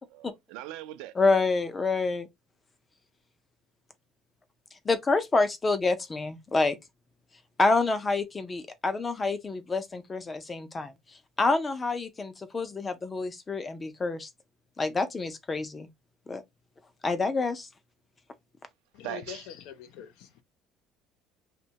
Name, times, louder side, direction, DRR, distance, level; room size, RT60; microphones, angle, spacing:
voice 1, 0.1-1.4 19.0-19.5, right 13 dB, 80° right, 0.5 m, -40 dB
voice 2, 1.2-2.3 4.9-6.8 7.6-10.9 11.4-14.3 14.8-15.9 16.3-16.4 17.0-17.7, left 3 dB, 15° left, 0.5 m, -27 dB
voice 3, 18.9-20.4, left 9 dB, 75° left, 0.5 m, -44 dB
2.9 x 2.1 x 2.7 m
cardioid pair, 155°, 0 cm